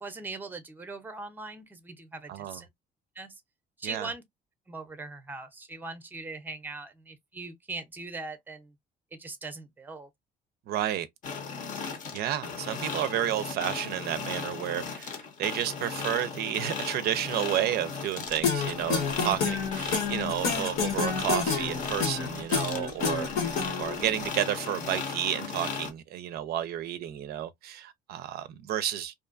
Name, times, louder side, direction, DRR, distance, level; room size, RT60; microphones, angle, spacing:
voice 1, 0.0-2.7 3.2-3.3 3.8-4.2 4.7-8.7 9.2-10.1, right 3 dB, 10° right, 0.6 m, -40 dB
voice 2, 2.3-2.6 3.8-4.1 10.7-11.1 11.8-29.1, right 11 dB, 65° right, 0.4 m, -31 dB
sound 1, 11.2-25.9, left 5 dB, 50° left, 0.8 m, -36 dB
sound 2, 18.4-24.0, left 5 dB, 70° left, 1.1 m, -28 dB
2.5 x 2.3 x 2.4 m
cardioid pair, 110°, 17 cm